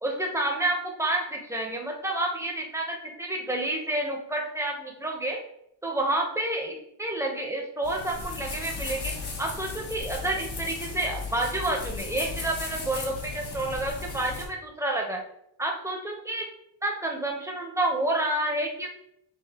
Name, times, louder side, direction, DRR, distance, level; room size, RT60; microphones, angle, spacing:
voice 1, 0.0-5.4 5.8-9.1 9.4-15.2 15.6-16.5 16.8-18.9, right 1 dB, 5° right, 0 dB, 0.8 m, -29 dB
sound 1, 7.8-14.4, left 4 dB, 60° left, 1.1 m, -36 dB
6.0 x 2.4 x 2.9 m, 0.77 s
wide cardioid pair, 105°, 43 cm